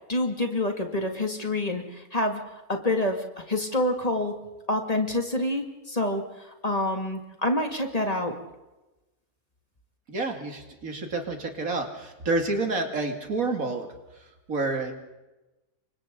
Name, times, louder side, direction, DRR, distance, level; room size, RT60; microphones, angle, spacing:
voice 1, 0.1-2.4 2.7-4.4 4.7-8.4, left 1 dB, 25° left, 4 dB, 2.4 m, -27 dB
voice 2, 10.1-13.9 14.1-14.9, right 3 dB, 70° right, 4 dB, 2.9 m, -29 dB
28.0 x 24.5 x 3.8 m, 1.1 s
omnidirectional pair, 1.5 m